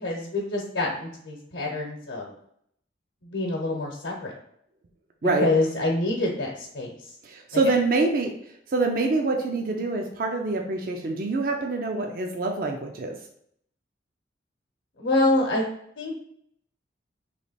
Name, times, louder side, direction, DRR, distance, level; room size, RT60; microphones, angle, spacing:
voice 1, 0.0-2.3 3.2-4.3 5.4-6.9 7.5-7.6 15.0-15.6 16.0-16.1, left 2 dB, 85° left, -2 dB, 0.8 m, -26 dB
voice 2, 7.2-8.3 8.7-13.2, right 3 dB, 50° right, 3 dB, 0.4 m, -25 dB
3.2 x 3.0 x 4.1 m, 0.69 s
head